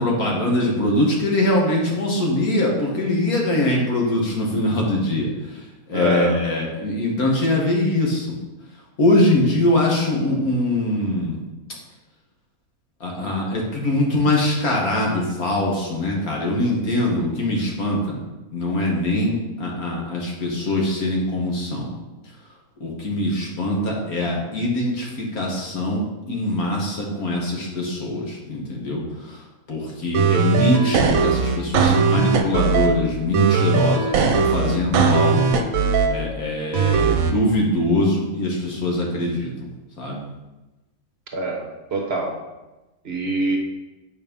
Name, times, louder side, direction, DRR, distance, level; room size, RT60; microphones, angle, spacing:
voice 1, 0.0-5.6 5.9-8.3 9.0-11.4 13.0-18.2 18.5-21.9 22.8-29.4 29.7-35.6 36.1-39.7 40.0-40.3, left 1 dB, 80° left, -1 dB, 2.2 m, -22 dB
voice 2, 5.9-6.4 41.3-42.4 43.0-43.6, right 2 dB, 45° right, 2 dB, 1.2 m, -25 dB
sound 1, 30.1-32.9 33.3-36.1 36.7-37.3, right 5 dB, 70° right, 1.2 m, -19 dB
8.8 x 4.6 x 5.3 m, 1.1 s
omnidirectional pair, 1.5 m